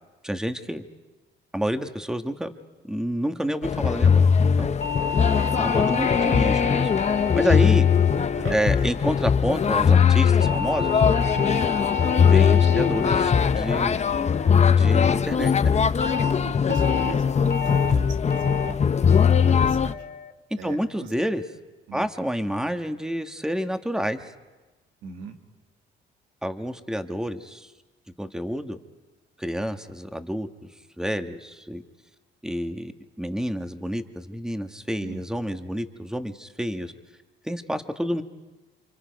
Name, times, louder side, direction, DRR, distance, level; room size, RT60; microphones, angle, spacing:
voice 1, 0.2-0.8 1.5-2.5 2.8-4.3 4.6-4.7 5.6-6.9 7.3-7.9 8.5-11.0 12.2-14.0 14.8-15.7 20.6-21.4 21.9-24.2 26.4-27.7 28.2-28.8 29.4-30.7 31.0-31.8 32.4-32.9 33.2-36.9 37.4-38.2, equal, 5° right, 7 dB, 1.4 m, -29 dB
sound 1, 3.6-19.9, left 7 dB, 35° left, 0.8 m, -20 dB
sound 2, 4.8-9.3 10.4-14.9 16.0-16.3 16.7-17.1 17.5-17.9 18.3-18.7 19.1-19.5 19.9-20.3, left 6 dB, 55° left, 2.3 m, -31 dB
voice 2, 6.2-6.6 8.3-8.6 11.3-11.6 16.4-18.9 19.3-20.0 20.6-21.1 21.9-22.1 25.0-25.4 35.0-35.2, right 6 dB, 85° right, 5 dB, 2.0 m, -40 dB
29.0 x 26.0 x 5.3 m, 1.2 s
cardioid pair, 90°, 20 cm